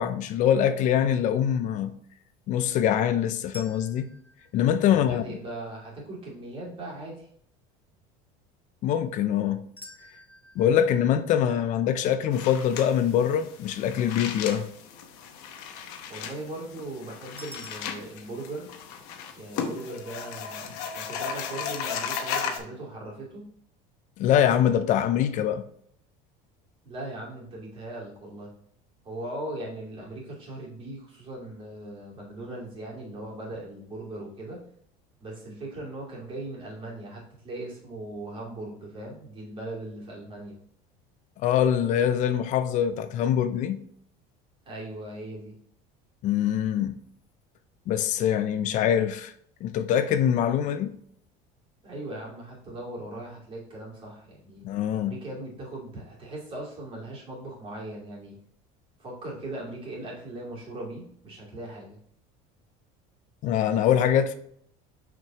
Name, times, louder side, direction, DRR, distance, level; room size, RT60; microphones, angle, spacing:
voice 1, 0.0-1.9 2.5-4.1 4.5-5.4 8.8-9.6 10.6-14.6 24.2-25.7 41.4-43.8 46.2-47.0 47.9-49.3 49.6-50.9 54.6-55.2 63.4-64.3, left 9 dB, 45° left, 0.5 m, -24 dB
sound 1, 3.5-5.6 9.8-12.9 17.4-17.7, left 1 dB, 10° left, 0.7 m, -49 dB
voice 2, 4.8-7.3 16.1-18.7 19.3-20.6 20.9-23.4 26.8-28.5 29.0-34.6 35.2-40.6 44.6-45.5 51.8-54.6 54.9-58.4 59.0-62.0, right 1 dB, 30° right, 2.6 m, -39 dB
sound 2, 12.3-22.6, left 7 dB, 70° left, 1.0 m, -36 dB
6.2 x 5.1 x 3.0 m
cardioid pair, 145°, 18 cm